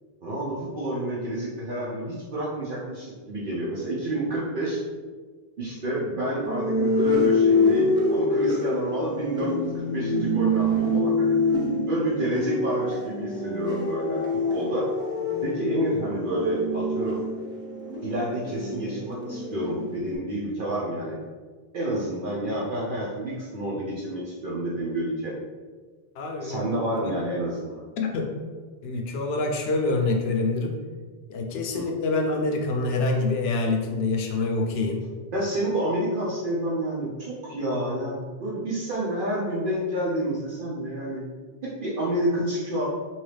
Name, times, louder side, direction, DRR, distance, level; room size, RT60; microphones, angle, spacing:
voice 1, 0.2-4.8 5.6-11.3 11.8-14.2 14.5-14.8 15.4-17.2 18.0-21.2 21.7-25.3 26.4-27.8 31.7-31.9 35.3-41.2 41.6-42.8, right 1 dB, 60° right, -7 dB, 0.8 m, -29 dB
sound 1, 6.4-20.2, left 2 dB, 5° right, 0.4 m, -25 dB
voice 2, 26.1-26.7 27.0-27.1 28.0-28.3 28.8-30.8 31.3-35.0, left 3 dB, 80° left, 2 dB, 0.8 m, -26 dB
2.8 x 2.7 x 3.3 m, 1.5 s
omnidirectional pair, 1.0 m